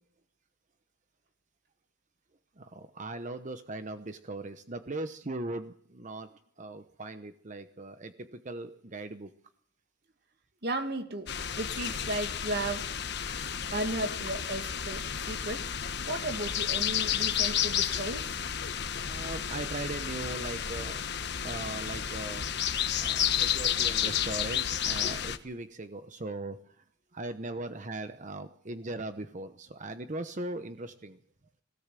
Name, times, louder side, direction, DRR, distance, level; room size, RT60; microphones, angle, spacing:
voice 1, 2.6-6.3 6.6-9.3 19.1-21.0 21.4-22.5 23.0-26.8 27.1-31.2, right 2 dB, 40° right, 0.9 m, -39 dB
voice 2, 10.6-11.3 11.5-12.9 13.7-15.7 16.0-18.4, right 2 dB, 55° right, 2.1 m, -35 dB
sound 1, 11.3-25.4, left 9 dB, 60° left, 1.2 m, -31 dB
21.0 x 17.0 x 7.6 m
head